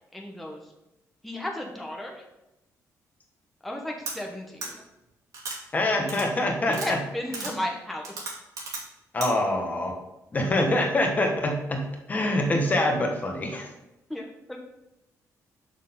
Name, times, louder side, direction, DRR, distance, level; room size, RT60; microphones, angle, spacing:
voice 1, 0.1-0.7 1.2-2.2 3.6-4.8 6.7-8.1 14.1-14.6, left 1 dB, ahead, 0 dB, 1.0 m, -34 dB
sound 1, 4.1-4.2 4.6-4.7 5.3-5.6 6.1-6.3 6.7-6.9 7.3-7.5 8.0-8.8 9.2-9.3, right 3 dB, 60° right, 2.4 m, -34 dB
voice 2, 5.7-7.0 9.1-10.0 10.3-13.7, left 1 dB, 25° left, 2 dB, 1.4 m, -25 dB
6.4 x 6.4 x 3.8 m, 0.94 s
cardioid pair, 140°, 6 cm